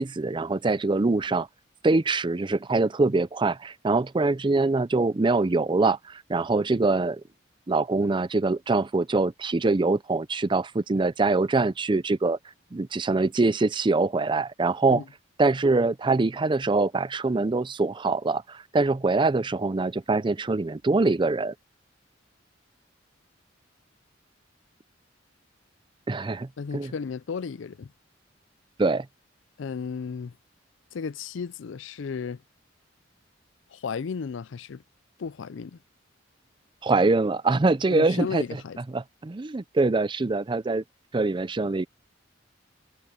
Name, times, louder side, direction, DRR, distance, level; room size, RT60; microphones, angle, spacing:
voice 1, 0.0-1.5 1.8-7.2 7.7-12.4 12.7-15.0 15.4-21.5 26.1-26.9 28.8-29.1 36.8-38.4 38.9-40.8 41.1-41.9, right 3 dB, 25° right, 0.5 m, -24 dB
voice 2, 26.6-27.9 29.6-30.3 30.9-32.4 33.7-34.8 35.2-35.8 37.9-38.8, left 5 dB, 70° left, 0.4 m, -34 dB
head